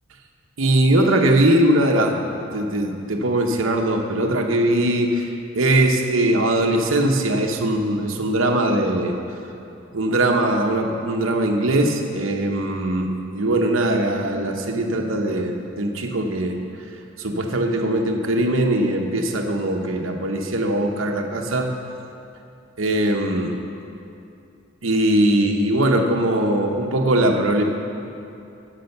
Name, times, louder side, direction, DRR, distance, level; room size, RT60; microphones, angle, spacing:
voice 1, 0.6-9.1 9.9-16.6 17.2-21.7 22.8-23.5 24.8-27.6, right 1 dB, 70° right, 2 dB, 1.0 m, -21 dB
10.0 x 6.3 x 6.7 m, 2.7 s
head